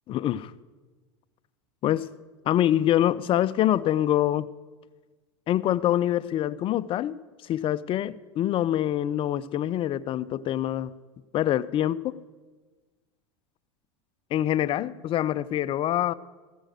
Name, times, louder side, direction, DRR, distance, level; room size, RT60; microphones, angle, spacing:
voice 1, 0.1-0.5 1.8-2.1 2.5-4.5 5.5-10.9 11.3-12.2 14.3-16.1, left 12 dB, 35° left, 17 dB, 0.4 m, -25 dB
15.5 x 6.4 x 6.4 m, 1.3 s
hypercardioid pair, 100°, 15 cm